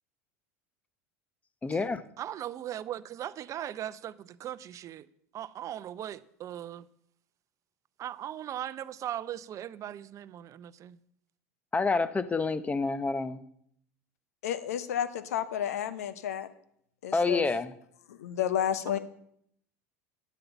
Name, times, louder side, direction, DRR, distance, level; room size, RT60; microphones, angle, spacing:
voice 1, 1.6-2.0 11.7-13.4 17.1-17.7, left 4 dB, 15° left, 0.8 m, -28 dB
voice 2, 2.2-5.1 5.3-6.9 8.0-11.0, right 11 dB, 40° right, 0.6 m, -39 dB
voice 3, 14.4-16.5 17.0-17.4 18.1-19.0, left 10 dB, 80° left, 0.9 m, -31 dB
10.5 x 7.8 x 6.9 m
hypercardioid pair, 85°, 8 cm